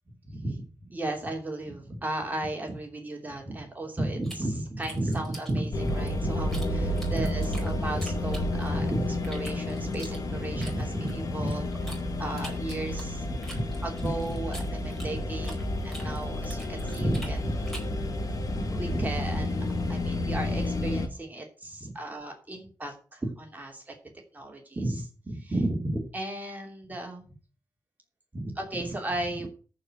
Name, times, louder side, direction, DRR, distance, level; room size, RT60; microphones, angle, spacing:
voice 1, 0.2-11.7 12.2-15.6 15.8-17.7 18.5-19.6 19.9-24.0 24.3-27.2 28.3-29.5, right 1 dB, 20° right, 1 dB, 3.1 m, -34 dB
sound 1, 4.2-6.7 7.0-8.8 9.2-12.0 12.4-15.6 15.9-18.0, right 1 dB, 5° left, 4.6 m, -45 dB
sound 2, 5.7-21.1, left 1 dB, 50° left, 1.9 m, -31 dB
14.0 x 4.9 x 7.8 m, 0.37 s
wide cardioid pair, 155°, 8 cm